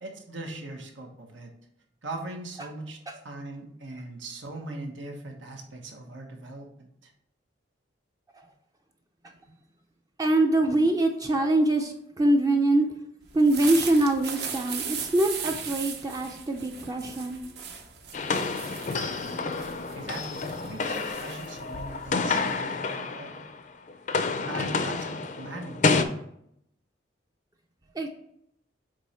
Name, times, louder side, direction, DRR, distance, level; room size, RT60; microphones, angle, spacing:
voice 1, 0.0-1.5 2.0-3.0 3.2-7.1 19.9-23.4 24.4-25.8, right 2 dB, 90° right, 3 dB, 1.1 m, -40 dB
voice 2, 10.2-12.9 13.3-17.4 28.0-28.1, right 1 dB, 20° right, 3 dB, 0.4 m, -24 dB
sound 1, 13.3-22.6, right 6 dB, 60° right, 0.8 m, -38 dB
sound 2, 18.1-23.6 23.9-26.0, left 4 dB, 40° left, 0.4 m, -29 dB
7.6 x 3.0 x 4.3 m, 0.74 s
head